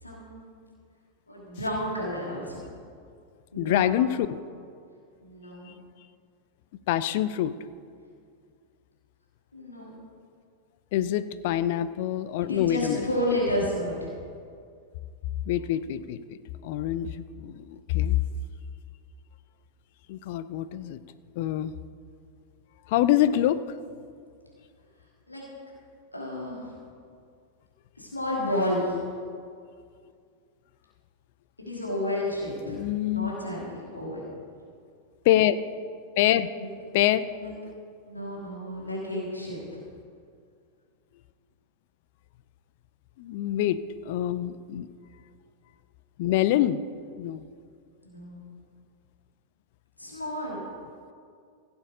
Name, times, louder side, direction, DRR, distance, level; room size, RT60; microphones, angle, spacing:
voice 1, 0.0-0.6 1.3-2.6 3.5-4.2 5.2-5.7 9.5-9.9 12.5-14.1 25.3-25.4 26.1-26.7 28.0-29.0 31.6-32.8 33.1-34.3 36.6-36.7 37.4-37.5 38.1-39.8 48.0-48.4 50.0-50.6, left 1 dB, 85° left, -5 dB, 2.6 m, -31 dB
voice 2, 3.6-4.4 6.9-7.5 10.9-13.1 15.5-16.4 16.6-18.2 20.1-21.0 21.4-21.7 22.9-23.6 32.6-33.3 35.2-35.6 36.2-36.5 36.9-37.3 43.2-43.8 44.1-44.9 46.2-46.8 47.2-47.4, left 12 dB, 50° left, 14 dB, 0.5 m, -25 dB
16.0 x 7.2 x 5.0 m, 2.2 s
figure-of-eight pair, 90°, 0 cm